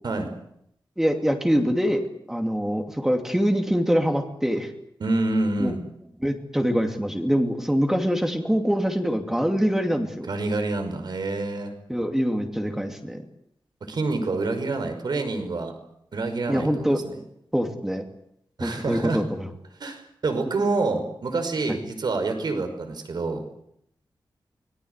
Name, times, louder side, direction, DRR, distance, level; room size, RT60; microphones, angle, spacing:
voice 1, 1.0-4.7 5.6-5.7 6.2-10.3 11.9-13.2 16.5-17.0 17.5-18.0 18.6-19.5 21.7-21.8, equal, 5° right, 4 dB, 2.7 m, -24 dB
voice 2, 5.0-5.8 10.3-11.7 13.8-15.7 16.1-17.2 18.6-19.2 19.8-23.5, right 3 dB, 60° right, 7 dB, 5.4 m, -27 dB
25.0 x 20.0 x 8.2 m, 0.75 s
wide cardioid pair, 130°, 8 cm